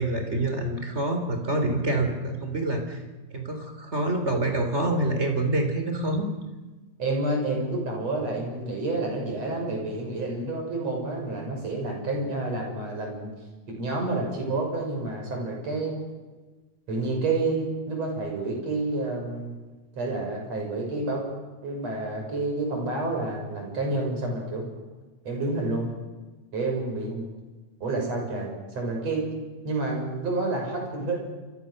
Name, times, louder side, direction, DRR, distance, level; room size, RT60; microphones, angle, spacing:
voice 1, 0.0-3.0 3.3-6.3, right 2 dB, 20° right, 5 dB, 3.3 m, -26 dB
voice 2, 7.0-13.3 13.8-15.9 16.9-19.6 19.9-21.2 21.6-24.7 25.3-25.9 26.5-27.3 27.8-29.2 29.6-31.2, right 2 dB, 55° right, 1 dB, 7.3 m, -29 dB
27.5 x 26.0 x 6.5 m, 1.2 s
omnidirectional pair, 3.6 m